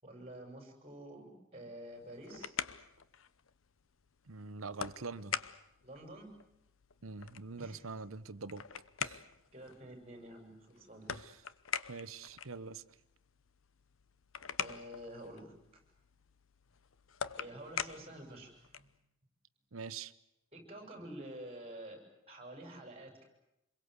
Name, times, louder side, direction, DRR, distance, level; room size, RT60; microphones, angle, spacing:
voice 1, 0.0-2.5 5.8-6.3 7.6-7.8 9.5-11.1 14.6-15.5 17.3-18.9 20.5-23.3, right 1 dB, 30° right, 5 dB, 6.9 m, -49 dB
sound 1, 1.9-19.0, left 8 dB, 75° left, 0.9 m, -45 dB
voice 2, 4.3-5.4 7.0-8.6 9.0-9.2 11.1-11.3 11.9-12.8 19.7-20.1, right 4 dB, 85° right, 16 dB, 1.0 m, -44 dB
27.0 x 22.0 x 8.1 m, 0.84 s
head